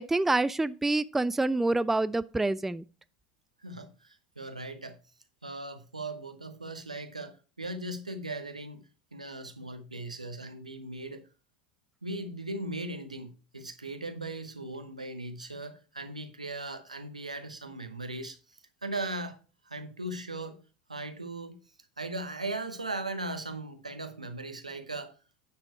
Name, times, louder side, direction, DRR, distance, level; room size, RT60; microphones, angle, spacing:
voice 1, 0.0-2.8, right 2 dB, 5° right, 0.3 m, -27 dB
voice 2, 3.6-5.0 5.4-11.2 12.0-19.4 19.6-20.6 20.9-21.6 22.0-25.1, right 2 dB, 85° right, 0.9 m, -38 dB
9.5 x 4.5 x 4.7 m
figure-of-eight pair, 75°, 4 cm